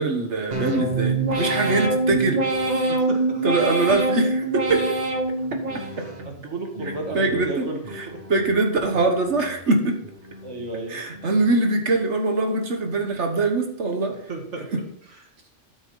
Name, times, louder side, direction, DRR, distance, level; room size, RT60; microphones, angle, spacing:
voice 1, 0.0-2.4 3.4-5.0 5.3-5.4 7.1-10.0 10.9-14.2 14.7-14.8, right 3 dB, 70° right, 4 dB, 1.6 m, -23 dB
sound 1, 0.5-6.3 6.8-7.4 7.8-8.5 8.9-9.6 10.0-10.6 11.1-11.7, right 2 dB, 35° right, 1.5 m, -26 dB
voice 2, 2.9-3.4 6.3-7.8 8.1-8.4 10.4-11.0 14.3-14.7, right 2 dB, 90° right, 2 dB, 2.0 m, -33 dB
13.0 x 6.1 x 3.9 m, 0.69 s
omnidirectional pair, 1.2 m